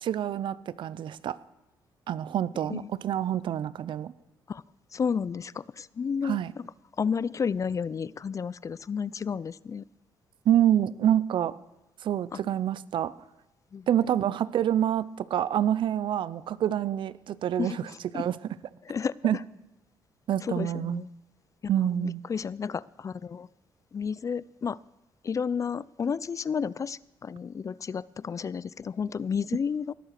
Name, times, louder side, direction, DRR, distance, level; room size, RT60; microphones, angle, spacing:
voice 1, 0.0-1.4 2.1-4.1 6.2-6.5 10.5-11.5 12.0-13.1 13.9-17.8 18.1-18.4 19.2-19.4 20.3-21.0 21.7-22.2, right 10 dB, 65° right, 19 dB, 0.5 m, -27 dB
voice 2, 4.9-6.4 7.0-9.8 12.3-12.4 13.7-13.9 17.6-17.8 18.1-18.2 18.9-19.1 20.4-21.1 21.6-23.5 23.9-24.8 25.2-29.9, left 6 dB, 35° left, 22 dB, 0.4 m, -31 dB
19.0 x 7.7 x 6.6 m, 0.98 s
supercardioid pair, 70°, 9 cm